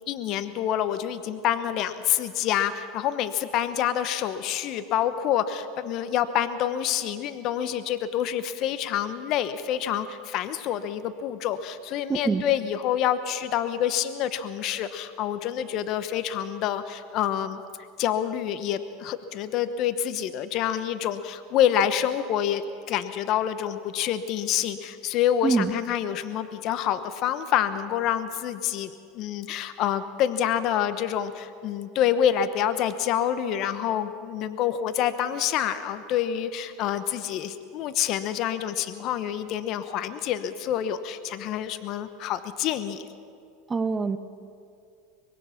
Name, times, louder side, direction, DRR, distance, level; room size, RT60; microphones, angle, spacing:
voice 1, 0.1-17.6 18.0-22.6 22.9-43.1, left 10 dB, 50° left, 11 dB, 1.1 m, -27 dB
voice 2, 12.1-12.5 25.4-25.7 43.7-44.2, right 4 dB, 20° right, 12 dB, 0.9 m, -24 dB
24.0 x 21.0 x 6.0 m, 2.4 s
supercardioid pair, 110°, 0 cm